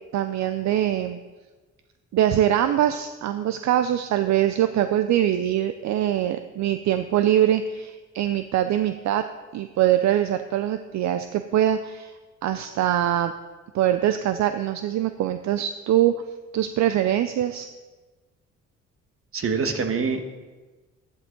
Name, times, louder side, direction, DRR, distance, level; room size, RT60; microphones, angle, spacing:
voice 1, 0.1-1.2 2.1-9.2 9.5-12.2 12.4-13.3 13.7-16.1 16.5-17.7, right 11 dB, 65° right, 9 dB, 0.6 m, -23 dB
voice 2, 19.3-20.2, right 5 dB, 45° right, 6 dB, 1.4 m, -25 dB
12.5 x 10.5 x 3.9 m, 1.3 s
cardioid pair, 90°, 30 cm